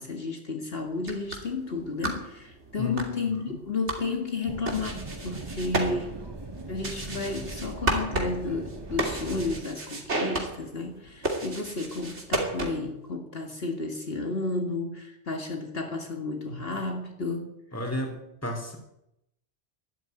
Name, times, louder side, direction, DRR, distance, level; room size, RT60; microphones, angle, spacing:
voice 1, 0.0-6.3 6.7-17.6, left 3 dB, 55° left, 3 dB, 2.2 m, -32 dB
sound 1, 0.9-13.0, right 2 dB, 75° right, 3.1 m, -34 dB
sound 2, 4.4-9.6, right 2 dB, 25° right, 0.9 m, -40 dB
voice 2, 17.7-18.8, left 1 dB, 10° left, 4 dB, 3.4 m, -33 dB
12.5 x 12.5 x 9.2 m, 0.83 s
omnidirectional pair, 1.2 m